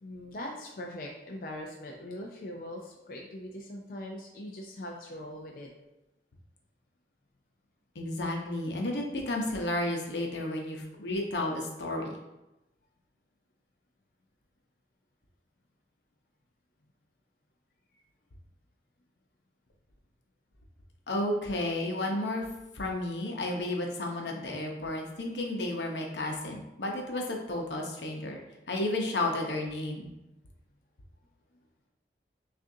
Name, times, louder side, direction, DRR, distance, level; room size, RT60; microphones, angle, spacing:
voice 1, 0.0-5.7, left 1 dB, 50° left, -1 dB, 0.4 m, -41 dB
voice 2, 7.9-12.2 21.1-22.5 22.7-28.4 28.7-30.1, left 1 dB, 85° left, 1 dB, 0.8 m, -32 dB
6.1 x 2.5 x 2.6 m, 0.96 s
head